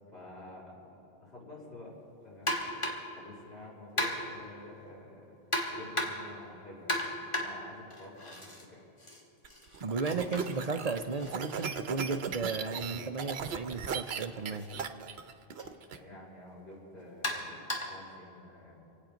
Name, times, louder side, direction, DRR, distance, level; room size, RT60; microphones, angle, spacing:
voice 1, 0.1-1.9 2.2-2.9 3.1-5.3 5.7-8.8 15.9-18.8, left 2 dB, 70° left, -8 dB, 5.1 m, -50 dB
sound 1, 2.5-3.2 4.0-4.5 5.5-6.4 6.9-8.6 9.0-12.8 13.9-14.1 14.6-14.7 15.6-15.7 17.2-18.1, left 1 dB, 25° left, 2.1 m, -36 dB
sound 2, 9.4-16.0, right 6 dB, 75° right, 1.1 m, -38 dB
voice 2, 9.8-14.7, right 4 dB, 40° right, 7 dB, 0.7 m, -34 dB
26.0 x 9.1 x 5.1 m, 2.8 s
omnidirectional pair, 1.1 m